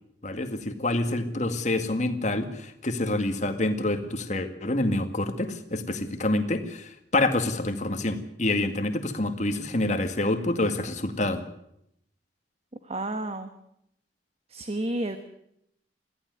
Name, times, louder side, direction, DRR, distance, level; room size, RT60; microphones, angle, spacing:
voice 1, 0.2-11.4, left 2 dB, 40° left, 8 dB, 2.1 m, -27 dB
voice 2, 12.8-13.5 14.5-15.2, right 1 dB, 35° right, 8 dB, 1.3 m, -31 dB
22.0 x 15.0 x 9.6 m, 0.77 s
head